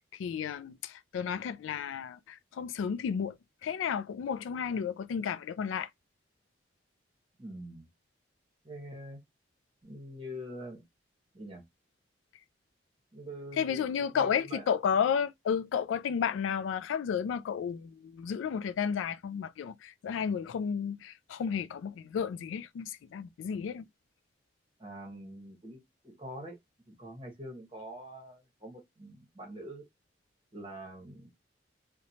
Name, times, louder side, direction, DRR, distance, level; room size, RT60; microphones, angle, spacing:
voice 1, 0.0-3.4 3.6-5.9 13.6-23.9, left 7 dB, 90° left, 0.3 m, -32 dB
voice 2, 7.4-7.9 8.6-9.2 9.8-10.8 11.3-11.6 13.1-14.6 24.8-26.6 26.9-29.9 30.5-31.3, equal, 25° right, 1.0 m, -45 dB
2.8 x 2.2 x 2.7 m
head